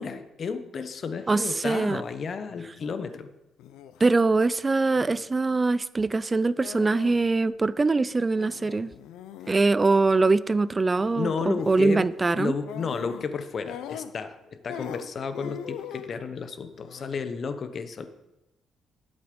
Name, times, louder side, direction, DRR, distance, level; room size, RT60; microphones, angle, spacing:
voice 1, 0.0-3.3 9.4-9.6 11.2-12.1 12.4-18.1, left 5 dB, 50° left, 10 dB, 1.0 m, -32 dB
voice 2, 1.3-2.0 4.0-8.9 9.5-12.5, right 3 dB, 25° right, 17 dB, 0.5 m, -23 dB
sound 1, 1.9-2.1 2.5-2.9 3.6-4.0 4.9-5.3 6.6-7.3 7.5-7.6 8.4-9.6 10.8-11.2 11.5-11.8 12.6-13.3 13.6-14.4 14.7-16.2 16.7-17.2, left 9 dB, 90° left, 0.6 m, -42 dB
11.0 x 8.0 x 5.3 m, 0.93 s
cardioid pair, 90°, 0 cm